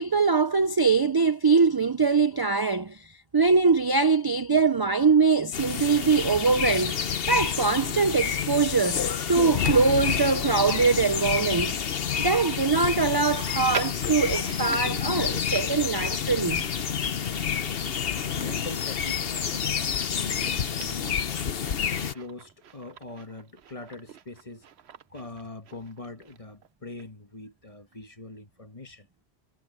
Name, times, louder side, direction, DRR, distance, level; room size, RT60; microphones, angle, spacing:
voice 1, 0.0-11.8 12.2-16.7, right 4 dB, 40° right, 0.3 m, -23 dB
sound 1, 5.5-22.1, left 7 dB, 60° left, 1.1 m, -28 dB
Chewing mastication, 13.1-26.7 27.0-27.1 27.9-28.0, right 8 dB, 70° right, 1.1 m, -45 dB
voice 2, 18.4-21.6 22.1-24.7 25.1-29.1, left 2 dB, 30° left, 1.6 m, -43 dB
omnidirectional pair, 1.2 m